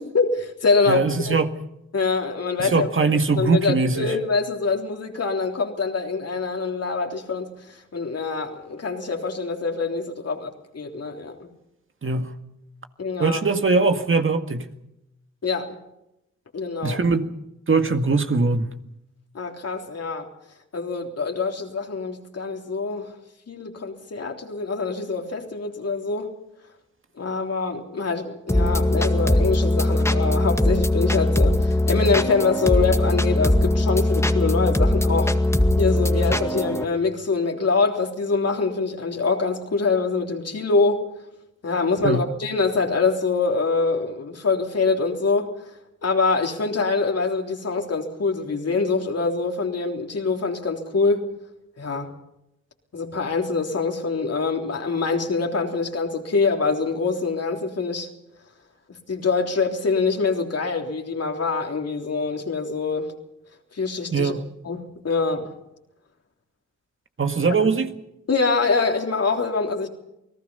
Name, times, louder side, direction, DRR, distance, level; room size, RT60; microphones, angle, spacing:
voice 1, 0.0-1.4 1.9-2.9 3.3-11.5 13.0-13.4 15.4-15.8 16.5-17.0 19.3-20.3 20.7-23.1 23.5-26.3 27.2-35.3 35.8-41.1 41.6-45.6 46.0-51.3 51.8-52.1 52.9-58.1 58.9-63.1 63.7-64.4 64.6-65.5 67.6-67.7 68.3-69.9, left 4 dB, 55° left, 3 dB, 3.6 m, -24 dB
voice 2, 0.9-1.5 2.6-4.1 12.0-12.3 13.2-14.7 16.8-17.3 17.7-18.7 42.0-42.3 64.1-64.4 67.2-67.9, right 4 dB, 45° right, 7 dB, 2.0 m, -21 dB
sound 1, 28.5-36.8, left 1 dB, 10° left, 2.0 m, -20 dB
29.0 x 18.5 x 5.6 m, 0.85 s
cardioid pair, 60°, 29 cm